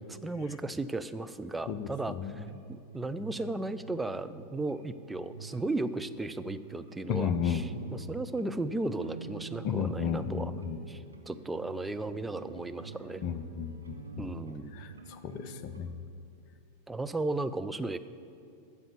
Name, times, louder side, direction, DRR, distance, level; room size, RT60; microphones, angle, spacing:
voice 1, 0.1-10.5 10.9-13.2 14.2-14.7 16.9-18.0, right 2 dB, 10° right, 11 dB, 0.4 m, -35 dB
voice 2, 1.7-2.4 7.1-7.6 9.6-10.8 13.2-14.3 14.7-16.0, left 7 dB, 40° left, 9 dB, 0.6 m, -33 dB
sound 1, 2.4-15.8, right 5 dB, 75° right, 0.9 m, -47 dB
9.2 x 6.9 x 7.0 m, 2.5 s
figure-of-eight pair, 90°, 0 cm